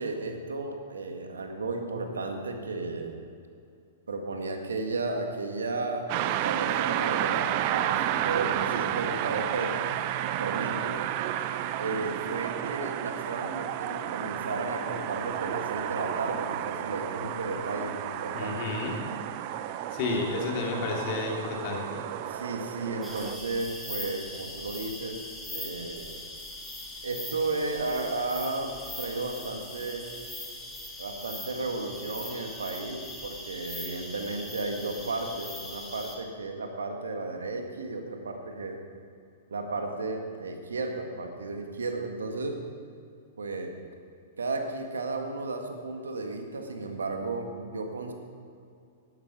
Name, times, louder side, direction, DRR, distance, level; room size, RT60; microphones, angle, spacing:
voice 1, 0.0-3.1 4.1-9.9 10.2-11.0 11.8-18.6 20.0-20.2 22.3-25.2 25.5-26.2 27.0-30.1 31.0-38.8 39.5-42.6 43.4-43.7 44.4-48.1, right 3 dB, 85° right, 4 dB, 1.7 m, -34 dB
sound 1, 6.1-23.4, right 11 dB, 50° right, 0.6 m, -31 dB
voice 2, 18.3-18.9 19.9-22.1, left 4 dB, 50° left, 0 dB, 2.9 m, -31 dB
sound 2, 23.0-36.2, left 1 dB, 5° left, 2.4 m, -41 dB
12.0 x 11.0 x 6.0 m, 2.5 s
hypercardioid pair, 115°, 0 cm